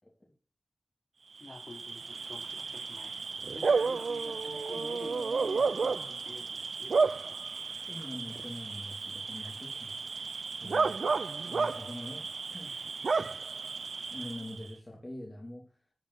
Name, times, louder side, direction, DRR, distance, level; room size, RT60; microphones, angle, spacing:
voice 1, 1.4-3.1 3.5-6.5 6.8-7.3 11.5-11.7, left 2 dB, 45° left, 4.5 m, -48 dB
Bark / Cricket, 1.4-14.7, right 4 dB, 85° right, 0.4 m, -32 dB
voice 2, 7.8-10.0 10.6-11.2 11.5-12.8 14.1-15.9, left 1 dB, 20° left, 2.8 m, -44 dB
12.5 x 5.3 x 5.5 m
wide cardioid pair, 85°, 0 cm